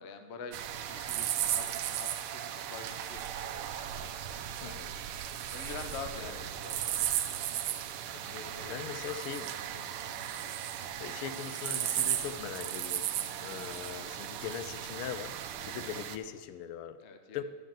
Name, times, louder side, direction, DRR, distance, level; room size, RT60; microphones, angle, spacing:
voice 1, 0.0-3.4 4.6-5.0 5.5-7.1 8.3-9.2 9.5-9.8 10.2-10.3 13.4-13.5 15.6-15.7 17.0-17.4, left 5 dB, 55° left, 6 dB, 0.7 m, -46 dB
sound 1, 0.5-16.2, right 10 dB, 80° right, 1.5 m, -36 dB
voice 2, 8.7-9.5 10.1-10.2 11.0-13.1 13.4-15.4 15.7-17.0 17.3-17.4, left 9 dB, 80° left, 12 dB, 1.5 m, -40 dB
12.0 x 5.1 x 7.4 m, 1.5 s
omnidirectional pair, 2.3 m